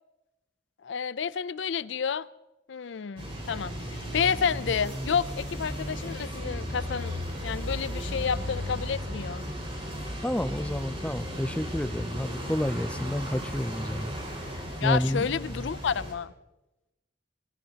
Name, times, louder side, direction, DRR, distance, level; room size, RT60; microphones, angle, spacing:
voice 1, 0.8-2.3 2.7-3.7 4.1-9.4 14.8-16.3, left 6 dB, 70° left, 17 dB, 0.5 m, -30 dB
sound 1, 3.2-16.1, equal, 30° right, 5.2 m, -35 dB
voice 2, 10.2-14.1 14.8-15.7, left 1 dB, 5° left, 11 dB, 0.5 m, -30 dB
25.5 x 19.5 x 2.9 m, 1.0 s
head